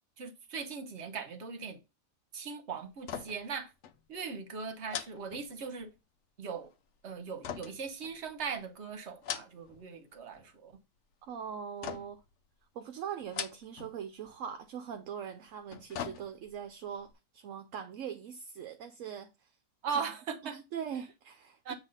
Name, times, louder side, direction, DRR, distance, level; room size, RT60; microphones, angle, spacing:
voice 1, 0.2-1.8 2.3-3.7 4.1-5.9 6.4-6.7 7.0-10.7 19.8-20.6 21.6-21.7, right 5 dB, 50° right, 1.2 m, -39 dB
sound 1, 3.0-3.6 3.8-4.0 4.9-6.0 7.4-8.5 9.1-9.9 10.2-10.7 11.8-12.3 13.2-14.0 14.2-14.4 15.5-16.6 17.1-17.2, left 8 dB, 60° left, 0.9 m, -41 dB
voice 2, 11.3-12.2 12.7-19.5 19.9-20.0 20.4-21.7, right 8 dB, 65° right, 0.9 m, -41 dB
8.1 x 3.0 x 5.5 m
omnidirectional pair, 1.6 m